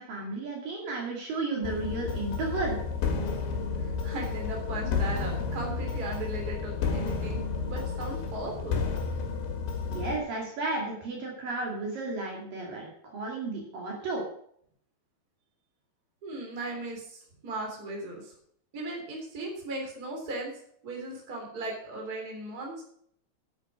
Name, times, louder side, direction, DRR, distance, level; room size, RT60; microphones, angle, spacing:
voice 1, 0.0-2.8 9.9-14.2, right 3 dB, 55° right, -1 dB, 3.7 m, -33 dB
sound 1, 1.6-10.2, left 5 dB, 85° left, 4.2 m, -31 dB
voice 2, 3.8-7.4 7.7-8.8 16.2-18.2 18.7-20.5 20.8-22.8, right 2 dB, 25° right, 0 dB, 3.4 m, -37 dB
9.8 x 9.2 x 6.1 m, 0.64 s
omnidirectional pair, 5.1 m